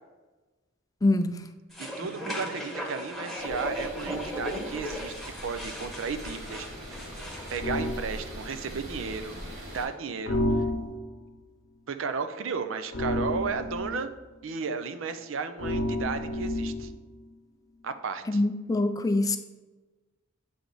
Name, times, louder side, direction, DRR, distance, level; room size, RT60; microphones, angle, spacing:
voice 1, 1.0-1.4 18.3-19.4, left 2 dB, 20° left, 9 dB, 0.4 m, -24 dB
sound 1, 1.7-7.6, equal, ahead, 1.0 m, -37 dB
voice 2, 2.0-5.1 5.4-6.7 7.5-9.3 9.7-10.4 11.9-14.1 14.4-16.9 17.8-18.4, right 5 dB, 75° right, 9 dB, 0.5 m, -34 dB
sound 2, 3.4-9.9, equal, 40° right, 1.8 m, -42 dB
sound 3, 7.6-8.0 10.3-11.2 12.9-14.0 15.6-17.0, left 1 dB, 65° left, 0.8 m, -30 dB
8.2 x 3.4 x 3.9 m, 1.2 s
head